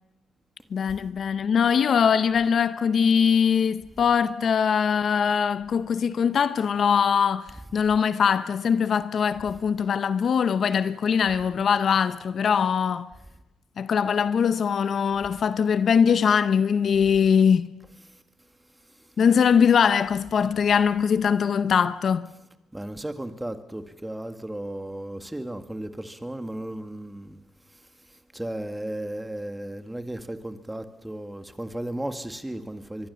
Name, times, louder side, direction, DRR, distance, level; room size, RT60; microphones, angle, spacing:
voice 1, 0.7-13.1 13.8-17.8 19.2-22.3, left 7 dB, 55° left, 0.7 m, -22 dB
voice 2, 22.7-27.4 28.3-33.1, right 1 dB, 10° right, 1.9 m, -35 dB
23.5 x 22.5 x 7.0 m
cardioid pair, 90°, 0 cm